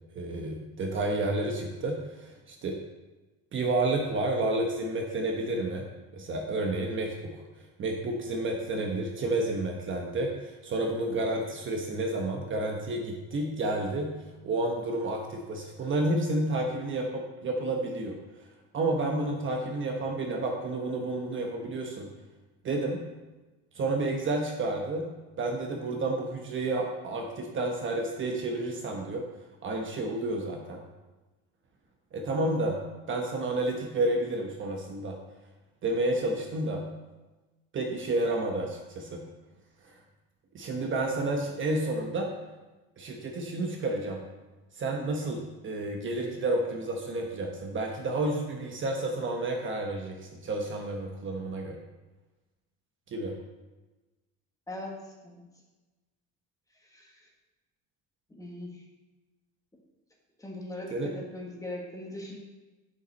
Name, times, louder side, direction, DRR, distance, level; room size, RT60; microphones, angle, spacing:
voice 1, 0.1-2.8 3.5-5.8 6.1-7.4 7.8-14.1 14.4-18.1 18.7-22.1 22.6-23.0 23.7-25.1 25.4-29.2 29.6-30.8 32.1-32.8 33.1-35.2 35.8-36.8 37.7-39.2 39.9-40.0 40.5-42.3 43.0-44.2 44.7-51.8 53.1-53.3 60.9-61.1, right 2 dB, 35° right, 1 dB, 1.1 m, -30 dB
voice 2, 54.7-55.4 56.9-57.2 58.3-58.8 60.4-62.4, left 1 dB, 10° left, -2 dB, 1.6 m, -40 dB
7.6 x 7.2 x 4.1 m, 1.2 s
cardioid pair, 135°, 35 cm